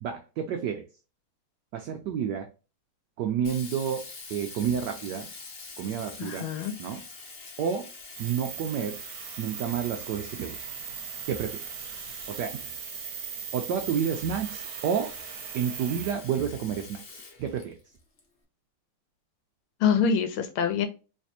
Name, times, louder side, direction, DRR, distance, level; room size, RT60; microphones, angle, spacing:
voice 1, 0.0-0.8 1.7-2.5 3.2-5.3 5.8-6.5 6.8-7.0 7.6-7.9 8.2-9.0 9.4-10.6 11.3-11.6 12.3-12.6 13.5-15.1 15.5-17.7, right 8 dB, 85° right, 5 dB, 0.9 m, -30 dB
Sink (filling or washing), 3.4-18.2, left 3 dB, 50° left, 0.8 m, -45 dB
voice 2, 6.2-6.7 19.8-20.9, left 7 dB, 80° left, 7 dB, 1.5 m, -25 dB
sound 1, 8.1-16.1, right 10 dB, 70° right, 1.2 m, -39 dB
3.3 x 3.3 x 2.7 m, 0.33 s
omnidirectional pair, 2.4 m